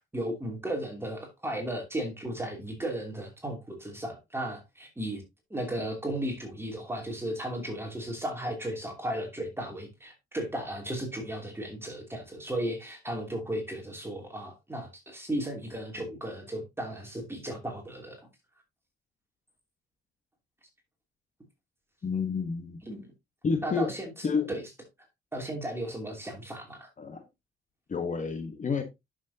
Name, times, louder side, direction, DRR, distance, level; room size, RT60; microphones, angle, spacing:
voice 1, 0.1-5.2 5.5-18.3 22.8-23.1 23.6-24.6 25.3-26.9, right 1 dB, 10° right, 2.8 m, -35 dB
voice 2, 22.0-22.8 23.4-23.9 24.2-24.5 27.0-27.2 27.9-28.8, left 5 dB, 40° left, 1.2 m, -29 dB
11.0 x 6.3 x 2.8 m
cardioid pair, 90°, 20 cm